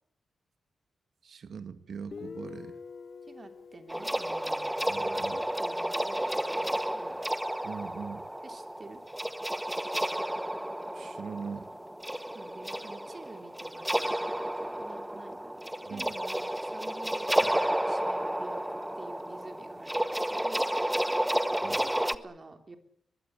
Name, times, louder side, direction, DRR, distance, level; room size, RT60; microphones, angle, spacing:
voice 1, 1.2-2.8 4.9-5.4 7.6-8.3 10.9-11.7 15.9-16.1 17.5-17.6 21.6-21.8, right 6 dB, 55° right, 11 dB, 2.0 m, -41 dB
Guitar, 2.1-5.6, left 5 dB, 40° left, 1.0 m, -47 dB
voice 2, 3.3-7.2 8.4-9.0 12.3-20.7 21.8-22.8, right 3 dB, 25° right, 7 dB, 3.1 m, -49 dB
sound 1, 3.9-22.1, right 1 dB, 5° right, 0.9 m, -31 dB
23.0 x 21.0 x 8.9 m, 0.67 s
wide cardioid pair, 160°, 0 cm